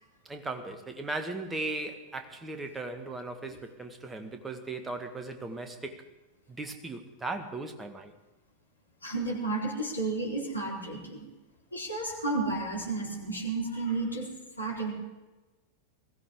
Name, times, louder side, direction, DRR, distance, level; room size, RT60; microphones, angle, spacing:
voice 1, 0.2-6.1 6.5-8.2, right 2 dB, 10° right, 1.6 m, -37 dB
voice 2, 9.0-11.2 11.7-14.3 14.6-14.9, right 3 dB, 85° left, 4.1 m, -32 dB
21.5 x 15.5 x 3.7 m
figure-of-eight pair, 90°, 0 cm